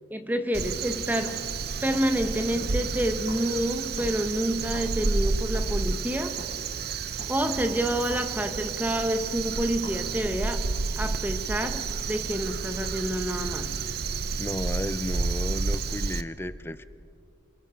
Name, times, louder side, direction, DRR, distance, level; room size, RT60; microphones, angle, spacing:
voice 1, 0.1-1.4 1.8-6.4 7.3-10.7 11.0-13.7, right 1 dB, 10° right, 7 dB, 1.1 m, -28 dB
Crow, 0.5-16.2, right 4 dB, 55° right, 0.7 m, -30 dB
sound 1, 1.2-11.1 11.6-12.4, left 2 dB, 85° left, 2.7 m, -49 dB
voice 2, 14.4-16.8, left 1 dB, 10° left, 13 dB, 0.5 m, -33 dB
27.5 x 20.5 x 5.1 m, 2.4 s
head